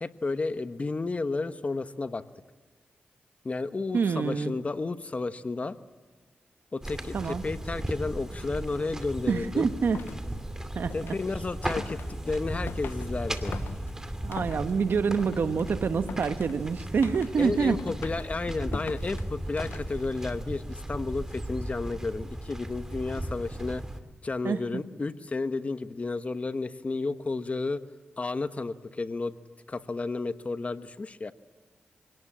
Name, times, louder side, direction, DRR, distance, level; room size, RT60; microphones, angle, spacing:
voice 1, 0.0-2.2 3.4-5.8 6.7-9.7 10.9-13.5 17.4-23.8 24.2-27.8 28.2-29.4 29.7-31.3, left 3 dB, 40° left, 11 dB, 1.2 m, -32 dB
voice 2, 3.9-4.5 7.1-7.4 9.3-10.0 10.7-11.2 14.2-17.8 24.4-24.8, right 5 dB, 70° right, 10 dB, 1.4 m, -27 dB
sound 1, 6.8-24.0, right 1 dB, 15° right, 2.5 m, -36 dB
sound 2, 9.7-20.3, left 7 dB, 85° left, 1.0 m, -45 dB
25.0 x 18.5 x 8.8 m, 1.4 s
cardioid pair, 65°, 4 cm